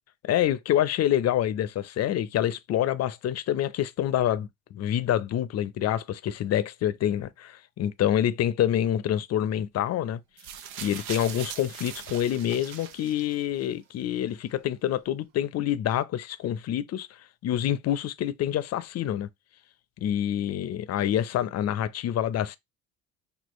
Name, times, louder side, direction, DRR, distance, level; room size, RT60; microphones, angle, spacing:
voice 1, 0.2-10.2 10.8-17.1 17.4-19.3 20.0-22.6, left 11 dB, 45° left, 0.6 m, -27 dB
sound 1, 10.4-13.6 14.5-14.6, right 9 dB, 75° right, 0.7 m, -40 dB
4.4 x 2.8 x 3.0 m
hypercardioid pair, 70°, 34 cm